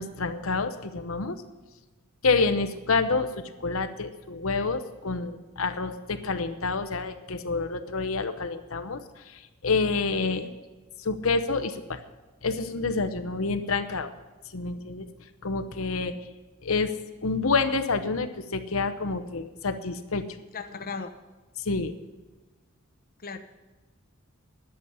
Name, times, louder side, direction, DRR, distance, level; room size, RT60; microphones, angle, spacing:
voice 1, 0.0-1.4 2.2-3.3 3.6-10.5 11.0-12.0 12.4-14.1 14.5-15.1 15.4-16.1 16.6-16.9 17.2-20.2 21.6-21.9, left 4 dB, 75° left, 8 dB, 0.9 m, -28 dB
voice 2, 20.5-21.1 23.2-23.4, left 5 dB, 45° left, 6 dB, 0.9 m, -36 dB
11.5 x 7.2 x 9.4 m, 1.2 s
head